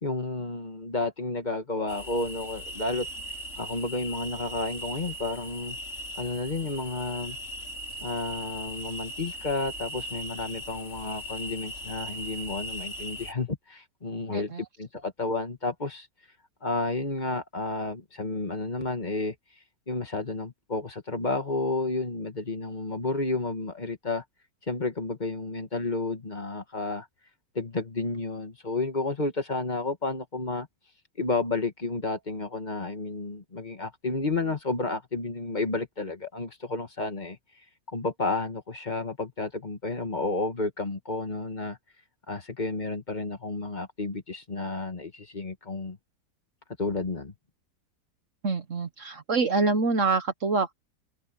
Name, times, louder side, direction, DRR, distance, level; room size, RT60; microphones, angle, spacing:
voice 1, 0.0-3.1 3.6-5.8 6.2-7.4 8.0-14.5 14.8-16.1 16.6-19.4 19.9-24.2 24.7-27.1 27.6-30.7 31.2-37.4 37.9-41.8 42.3-46.0 46.8-47.3, left 3 dB, 25° left, 1.9 m, -31 dB
sound 1, 1.9-13.3, equal, 45° left, 6.2 m, -39 dB
voice 2, 14.3-14.6 48.4-50.7, right 4 dB, 50° right, 1.4 m, -26 dB
omnidirectional pair, 1.8 m